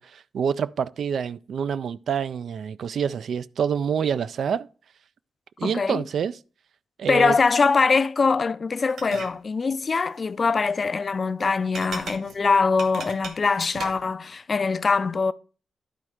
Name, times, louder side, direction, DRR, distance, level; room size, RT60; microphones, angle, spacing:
voice 1, 0.0-4.7 5.6-6.4 7.0-7.4, right 7 dB, 70° right, 0.3 m, -27 dB
voice 2, 5.6-6.0 7.1-15.3, left 4 dB, 35° left, 0.4 m, -23 dB
sound 1, 8.9-9.3 11.7-14.1, right 5 dB, 85° right, 1.2 m, -37 dB
11.0 x 4.4 x 4.8 m
wide cardioid pair, 140°, 0 cm